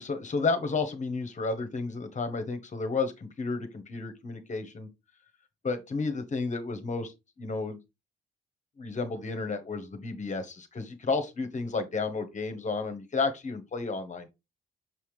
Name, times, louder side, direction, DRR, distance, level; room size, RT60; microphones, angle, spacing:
voice 1, 0.0-4.9 5.6-7.1 7.4-7.8 8.8-14.3, left 4 dB, 35° left, 1.3 m, -32 dB
5.9 x 5.6 x 3.2 m
cardioid pair, 90°, 20 cm